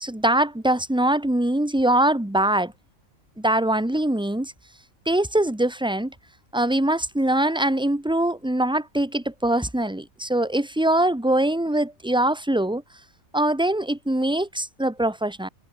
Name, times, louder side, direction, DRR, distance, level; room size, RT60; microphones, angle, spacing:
voice 1, 0.0-2.7 3.4-4.5 5.0-6.1 6.5-12.8 13.3-15.5, right 1 dB, 5° right, 1.6 m, -22 dB
omnidirectional pair, 1.5 m